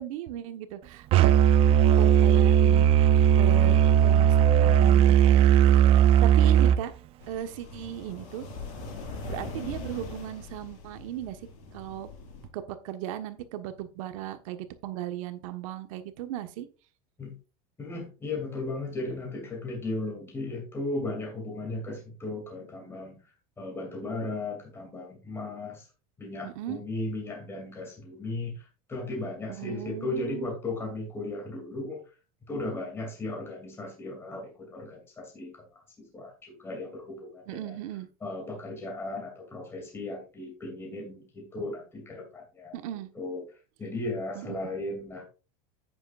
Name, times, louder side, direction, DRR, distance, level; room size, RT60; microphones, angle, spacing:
voice 1, 0.0-1.6 1.8-5.7 6.2-6.9 7.3-8.5 9.3-11.4 11.7-12.1 12.5-16.7 26.4-26.8 29.5-30.5 37.5-38.1 42.7-43.1 44.3-44.8, right 11 dB, 75° right, 9 dB, 1.3 m, -37 dB
Musical instrument, 1.1-6.8, right 9 dB, 35° right, 0.4 m, -18 dB
sound 1, 7.2-12.5, left 3 dB, 70° left, 5.4 m, -41 dB
voice 2, 17.8-23.2 23.6-25.9 26.2-32.0 32.5-37.8 38.2-42.8 43.1-43.4 43.8-45.3, left 2 dB, 15° left, 0 dB, 2.6 m, -36 dB
10.0 x 8.9 x 2.5 m, 0.33 s
supercardioid pair, 165°, 17 cm